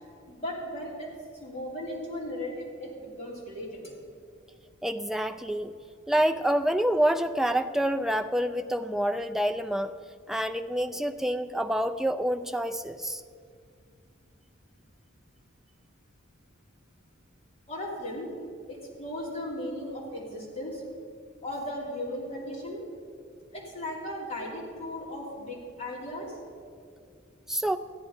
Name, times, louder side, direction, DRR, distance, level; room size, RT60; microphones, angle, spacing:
voice 1, 0.3-1.1 1.4-3.9 17.7-18.3 18.7-20.8 21.4-22.8 23.5-26.3, left 1 dB, 30° left, -4 dB, 3.0 m, -36 dB
voice 2, 4.8-5.7 6.1-10.0 10.3-13.2 27.5-27.8, equal, ahead, 7 dB, 0.3 m, -27 dB
14.0 x 9.8 x 5.3 m, 2.3 s
head